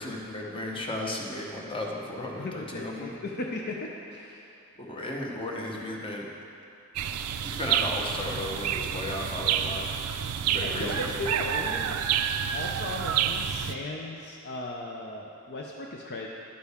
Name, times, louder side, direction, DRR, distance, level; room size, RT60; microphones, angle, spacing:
voice 1, 0.0-3.1 4.8-6.4 7.4-9.9 10.4-11.2, left 1 dB, 25° left, -1 dB, 1.0 m, -35 dB
voice 2, 2.4-4.5 10.6-12.0 12.5-16.3, left 2 dB, 50° left, -1 dB, 0.6 m, -37 dB
sound 1, 7.0-13.8, right 8 dB, 85° right, 0.4 m, -29 dB
10.5 x 8.6 x 3.6 m, 2.8 s
head